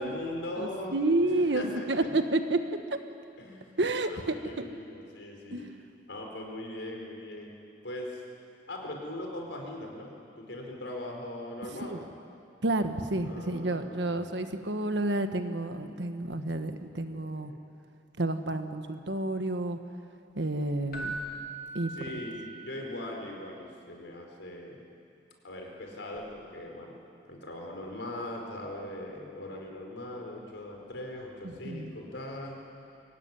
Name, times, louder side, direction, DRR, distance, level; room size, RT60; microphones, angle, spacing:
voice 1, 0.0-1.0 1.3-2.1 3.4-3.7 4.0-5.7 6.1-7.5 7.8-8.2 8.7-12.1 13.2-14.5 17.1-17.6 21.9-24.8 25.4-27.0 27.3-32.6, left 1 dB, 75° left, 1 dB, 4.5 m, -40 dB
voice 2, 0.6-2.6 3.8-4.6 5.5-5.6 11.8-12.0 12.6-17.5 18.2-19.8 20.3-21.2 21.7-21.9 31.6-31.9, right 2 dB, 65° right, 8 dB, 1.3 m, -30 dB
Keyboard (musical), 20.9-22.9 26.1-26.3, right 2 dB, 50° left, 2.7 m, -40 dB
24.0 x 17.0 x 9.8 m, 2.6 s
head